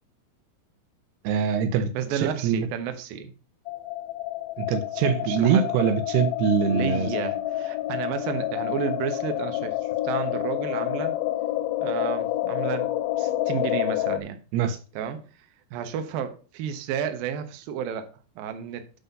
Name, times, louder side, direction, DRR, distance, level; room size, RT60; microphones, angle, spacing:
voice 1, 1.2-2.7 4.6-7.1 14.5-14.8, right 7 dB, 85° right, 3.0 m, -24 dB
voice 2, 1.9-3.3 5.2-5.7 6.7-11.2 11.8-12.9 13.2-14.4 14.9-18.9, right 8 dB, 70° right, 2.8 m, -32 dB
sound 1, 3.7-14.2, left 14 dB, 80° left, 2.3 m, -28 dB
12.0 x 4.3 x 5.3 m
omnidirectional pair, 4.6 m